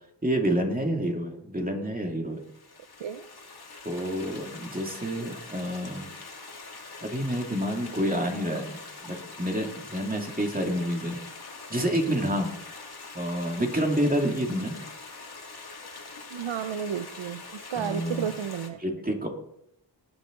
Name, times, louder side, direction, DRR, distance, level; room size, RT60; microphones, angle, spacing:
voice 1, 0.2-2.4 3.8-6.1 7.0-11.2 11.7-12.5 13.1-14.8 17.8-18.3 18.8-19.3, equal, 20° right, 1 dB, 2.4 m, -28 dB
Stream, 2.4-18.7, left 3 dB, 55° left, 2.5 m, -44 dB
voice 2, 16.3-18.8, right 8 dB, 85° right, 9 dB, 0.8 m, -32 dB
20.0 x 9.4 x 3.9 m, 0.76 s
wide cardioid pair, 95°, 45 cm